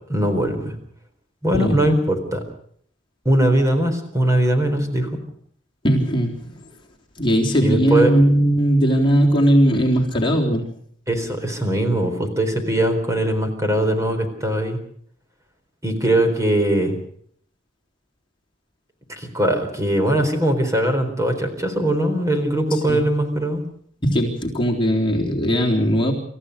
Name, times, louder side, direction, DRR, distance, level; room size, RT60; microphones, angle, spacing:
voice 1, 0.1-0.7 1.4-2.4 3.2-5.1 7.6-8.1 11.1-14.8 15.8-16.9 19.1-23.6, right 1 dB, 15° right, 5 dB, 4.2 m, -20 dB
voice 2, 5.8-6.6 7.2-10.7 22.7-23.1 24.0-26.1, equal, 25° left, -1 dB, 3.7 m, -18 dB
28.0 x 15.0 x 6.6 m, 0.63 s
head